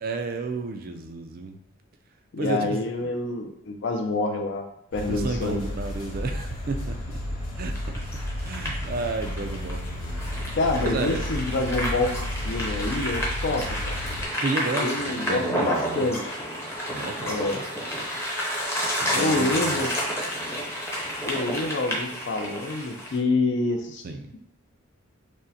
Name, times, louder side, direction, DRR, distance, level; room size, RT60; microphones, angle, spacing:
voice 1, 0.0-1.6 2.4-3.1 5.1-7.2 7.6-8.1 8.4-10.4 10.8-11.2 14.4-16.1 16.9-17.7 19.0-19.9 24.0-24.3, right 3 dB, 40° right, 6 dB, 0.3 m, -32 dB
voice 2, 2.3-4.6 4.9-5.7 10.5-12.1 12.4-13.9 14.8-16.4 17.3-17.6 19.1-19.9 21.3-24.0, left 2 dB, 55° left, 4 dB, 0.4 m, -27 dB
sound 1, 4.9-14.2, left 1 dB, 85° left, 1.1 m, -32 dB
sound 2, 7.7-23.2, equal, 10° left, 0.6 m, -30 dB
6.1 x 2.1 x 2.7 m, 0.76 s
head